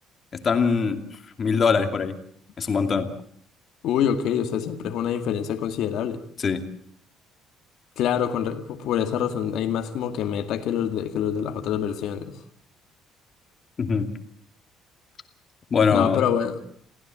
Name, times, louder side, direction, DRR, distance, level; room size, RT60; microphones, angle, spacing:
voice 1, 0.4-1.0 1.4-2.2 2.6-3.1 6.4-6.6 13.8-14.1 15.7-16.2, left 5 dB, 30° left, 6 dB, 2.6 m, -22 dB
voice 2, 3.8-6.2 8.0-12.4 15.9-16.6, left 9 dB, 65° left, 5 dB, 2.1 m, -26 dB
28.0 x 16.0 x 7.6 m, 0.65 s
cardioid pair, 145°, 0 cm